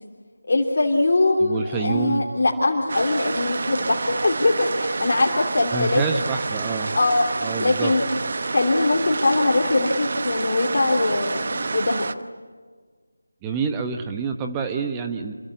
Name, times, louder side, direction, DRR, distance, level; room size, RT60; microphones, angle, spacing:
voice 1, 0.5-6.0 6.9-8.0 8.5-12.0, left 2 dB, 45° left, -1 dB, 3.2 m, -22 dB
voice 2, 1.4-2.3 5.7-7.0 7.4-7.9 13.4-15.3, right 5 dB, 10° right, 5 dB, 1.1 m, -27 dB
sound 1, 2.9-12.1, right 3 dB, 45° right, 1.1 m, -28 dB
28.0 x 23.5 x 8.6 m, 1.5 s
figure-of-eight pair, 165°, 0 cm